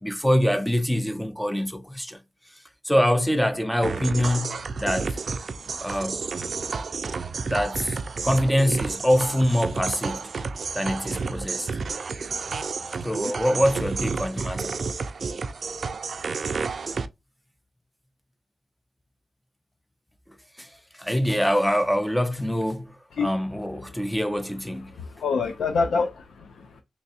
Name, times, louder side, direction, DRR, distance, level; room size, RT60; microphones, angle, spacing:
voice 1, 0.0-2.2 2.8-5.2 5.8-6.2 7.5-8.0 8.2-10.3 10.7-11.7 13.0-14.8 20.6-20.7 21.0-22.9 23.2-24.9, equal, 5° left, 0.5 m, -24 dB
sound 1, 3.8-17.1, right 4 dB, 55° right, 0.3 m, -31 dB
voice 2, 24.9-26.8, left 4 dB, 90° left, 0.5 m, -27 dB
3.3 x 3.2 x 2.7 m
wide cardioid pair, 100°, 0 cm